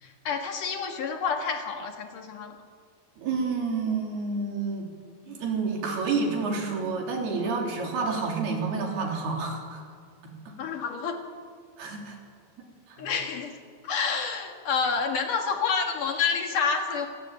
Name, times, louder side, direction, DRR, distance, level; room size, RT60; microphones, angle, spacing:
voice 1, 0.0-2.6 10.6-11.2 13.0-13.6 13.8-17.1, left 5 dB, 60° left, 4 dB, 3.2 m, -28 dB
voice 2, 3.2-4.9 5.2-9.8 10.2-10.5 11.8-12.2 12.9-13.1, right 4 dB, 75° right, 1 dB, 5.5 m, -29 dB
27.5 x 18.0 x 9.2 m, 2.1 s
omnidirectional pair, 4.6 m